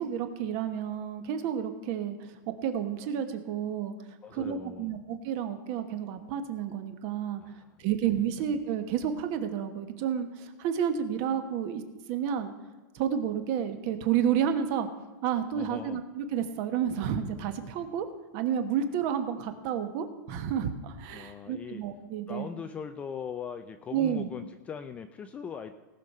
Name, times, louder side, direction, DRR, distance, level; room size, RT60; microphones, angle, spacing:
voice 1, 0.0-3.9 4.3-7.4 7.8-11.8 12.1-12.5 12.9-14.9 15.2-18.1 18.3-22.5 23.9-24.3, right 8 dB, 35° right, 9 dB, 1.2 m, -30 dB
voice 2, 4.2-5.0 7.4-8.0 15.5-16.0 21.1-21.8 22.3-25.7, left 7 dB, 10° left, 8 dB, 0.4 m, -40 dB
18.5 x 6.5 x 5.5 m, 1.3 s
supercardioid pair, 170°, 11 cm